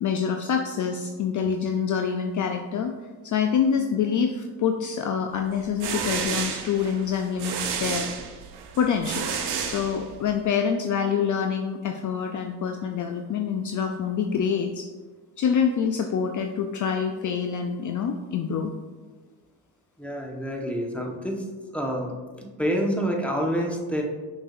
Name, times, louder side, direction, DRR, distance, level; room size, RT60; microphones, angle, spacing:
voice 1, 0.0-2.9 3.2-8.1 8.8-9.3 9.6-14.9 15.4-18.7, left 7 dB, 45° left, 5 dB, 0.5 m, -26 dB
sound 1, 5.5-10.4, right 6 dB, 65° right, 1.0 m, -31 dB
voice 2, 20.0-21.4 21.7-22.1 22.4-24.0, equal, 5° left, 0 dB, 1.2 m, -27 dB
6.1 x 6.1 x 2.5 m, 1.3 s
supercardioid pair, 70°, 44 cm